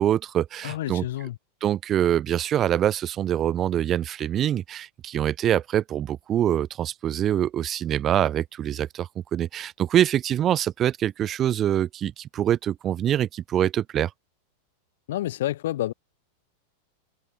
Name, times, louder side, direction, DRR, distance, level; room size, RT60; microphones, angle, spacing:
voice 1, 0.0-1.0 1.6-14.1, right 11 dB, 30° right, 0.4 m, -24 dB
voice 2, 0.6-1.4 15.1-15.9, left 14 dB, 55° left, 3.1 m, -29 dB
figure-of-eight pair, 90°, 0 cm